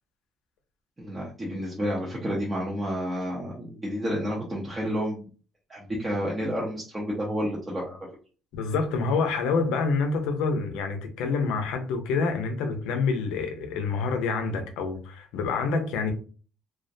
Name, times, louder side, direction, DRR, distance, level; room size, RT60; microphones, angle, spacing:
voice 1, 1.0-5.3 5.7-8.1, equal, 20° right, 0.6 m, -30 dB
voice 2, 8.5-16.1, left 4 dB, 90° left, 0.5 m, -27 dB
2.2 x 2.1 x 2.6 m
cardioid pair, 110°, 0 cm